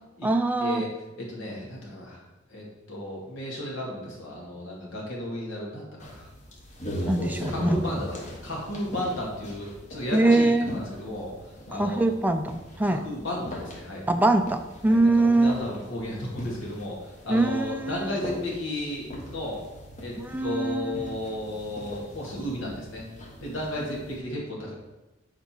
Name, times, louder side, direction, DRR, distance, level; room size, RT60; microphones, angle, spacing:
voice 1, 0.2-0.8 7.1-7.8 10.1-10.7 11.8-13.0 14.1-15.6 17.3-18.2 20.2-21.2, right 2 dB, 10° right, 7 dB, 0.4 m, -23 dB
voice 2, 1.2-6.3 7.5-8.2 8.4-11.3 11.7-12.1 12.8-14.0 14.9-19.6 20.0-23.0 23.4-24.7, left 1 dB, 75° left, -3 dB, 2.2 m, -34 dB
sound 1, 6.0-24.2, equal, 35° left, 1.3 m, -40 dB
7.0 x 5.1 x 4.4 m, 1.0 s
head